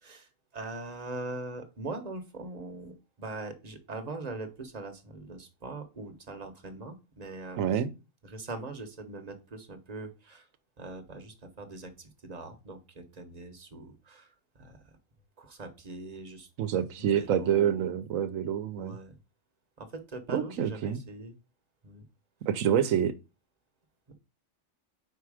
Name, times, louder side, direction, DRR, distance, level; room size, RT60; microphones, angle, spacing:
voice 1, 0.0-7.7 8.2-10.5 10.8-15.0 15.4-16.5 17.0-18.0 18.8-19.2 19.8-21.3 21.8-22.0 24.1-24.2, right 2 dB, 35° right, 1.0 m, -42 dB
voice 2, 7.6-7.9 16.6-19.0 20.3-21.0 22.5-23.1, right 9 dB, 85° right, 1.1 m, -27 dB
4.9 x 4.6 x 4.8 m
omnidirectional pair, 1.3 m